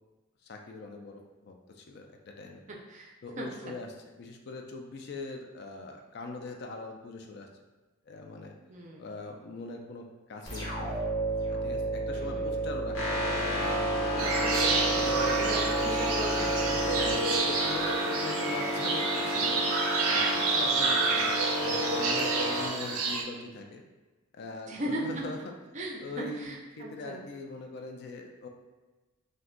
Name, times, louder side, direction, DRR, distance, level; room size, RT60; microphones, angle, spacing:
voice 1, 0.4-2.6 3.2-7.5 8.1-8.5 9.0-11.0 11.5-13.2 13.8-14.0 15.0-15.5 16.7-19.6 20.1-23.8 24.3-25.5 26.0-28.5, left 3 dB, 50° left, 3 dB, 0.3 m, -41 dB
voice 2, 2.9-3.8 8.7-9.1 12.1-12.7 14.4-16.8 24.7-25.0 25.7-27.2, right 1 dB, 35° right, -1 dB, 0.4 m, -38 dB
sound 1, 10.5-18.0, right 3 dB, 15° left, 0.6 m, -32 dB
sound 2, 12.9-22.7, equal, 85° left, 0.8 m, -31 dB
sound 3, 14.2-23.2, right 4 dB, 90° right, 0.5 m, -29 dB
2.5 x 2.2 x 3.7 m, 1.2 s
head